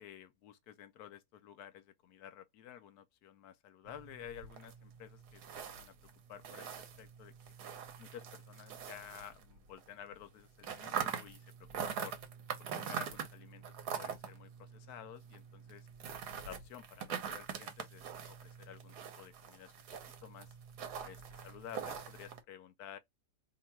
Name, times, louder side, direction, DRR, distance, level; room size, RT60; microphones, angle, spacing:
voice 1, 0.0-6.0 6.3-7.3 8.0-12.2 12.6-15.9 16.4-19.7 20.2-20.5 21.0-23.0, left 10 dB, 75° left, 0.9 m, -52 dB
sound 1, 3.9-9.9 10.1-22.4, right 7 dB, 65° right, 1.2 m, -44 dB
2.8 x 2.8 x 4.3 m
omnidirectional pair, 2.0 m